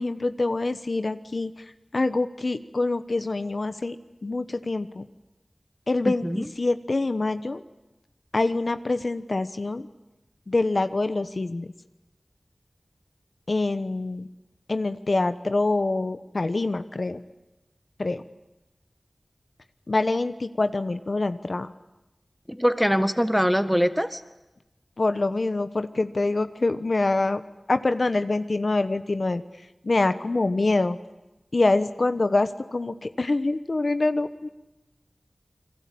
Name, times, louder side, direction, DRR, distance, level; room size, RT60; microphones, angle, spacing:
voice 1, 0.0-1.5 1.9-4.0 4.2-5.1 5.9-7.6 8.3-9.9 10.5-11.7 13.5-14.3 14.7-17.2 18.0-18.2 19.9-21.7 25.0-27.4 27.7-29.4 29.8-31.0 31.5-34.5, left 2 dB, 65° left, 10 dB, 1.1 m, -25 dB
voice 2, 6.1-6.4 22.5-24.2, equal, ahead, 10 dB, 1.8 m, -23 dB
29.0 x 22.5 x 8.7 m, 1.0 s
wide cardioid pair, 45°, 0 cm